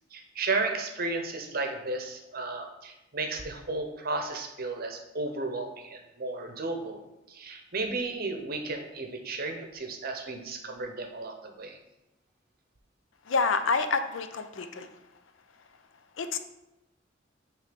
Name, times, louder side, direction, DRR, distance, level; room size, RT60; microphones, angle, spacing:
voice 1, 0.1-7.0 7.3-11.8, right 3 dB, 50° right, 5 dB, 0.8 m, -34 dB
voice 2, 13.3-14.9 16.2-16.4, left 4 dB, 80° left, 9 dB, 0.5 m, -28 dB
6.5 x 3.2 x 5.1 m, 0.95 s
head